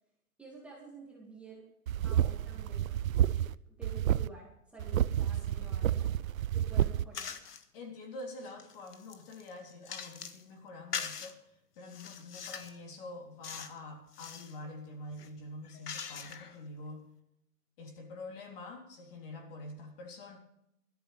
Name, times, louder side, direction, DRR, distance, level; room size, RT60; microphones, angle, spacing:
voice 1, 0.4-1.7 2.0-3.0 3.7-6.1 6.5-7.4, right 3 dB, 5° right, -5 dB, 2.3 m, -50 dB
sound 1, 1.9-3.5 3.8-4.3 4.8-7.0, right 11 dB, 65° right, 0.6 m, -29 dB
voice 2, 5.3-5.7 7.7-17.0 17.8-20.4, left 2 dB, 35° left, 2 dB, 3.4 m, -46 dB
sound 2, 7.1-7.6 8.2-10.4 10.9-11.3 11.9-12.8 13.4-13.8 14.1-14.6 15.1-16.6, left 6 dB, 90° left, 1.8 m, -42 dB
17.5 x 13.5 x 3.5 m, 0.77 s
hypercardioid pair, 160°, 46 cm